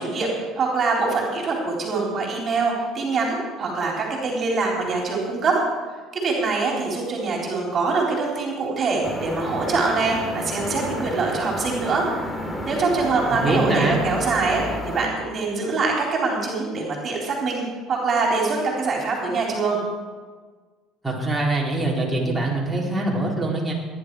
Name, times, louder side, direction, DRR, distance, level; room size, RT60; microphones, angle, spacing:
voice 1, 0.0-5.6 6.1-12.1 12.7-19.8, right 4 dB, 40° right, -2 dB, 3.9 m, -24 dB
sound 1, 9.0-15.1, left 1 dB, 15° left, 2.8 m, -31 dB
voice 2, 13.3-14.0 21.0-23.7, right 2 dB, 10° right, -5 dB, 4.4 m, -23 dB
18.5 x 10.5 x 4.8 m, 1.4 s
supercardioid pair, 85°, 0 cm